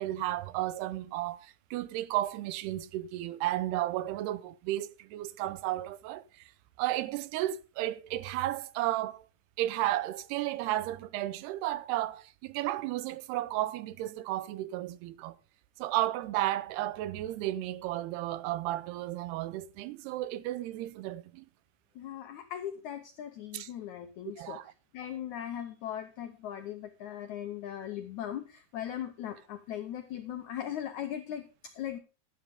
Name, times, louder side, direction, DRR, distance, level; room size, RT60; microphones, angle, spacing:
voice 1, 0.0-6.4 6.8-9.3 9.6-15.4 15.8-21.5 23.5-23.7 24.4-24.7, right 15 dB, 85° right, 2.7 m, -33 dB
voice 2, 21.9-24.6 24.9-32.0, left 10 dB, 80° left, 1.7 m, -39 dB
12.5 x 11.0 x 3.5 m
omnidirectional pair, 4.6 m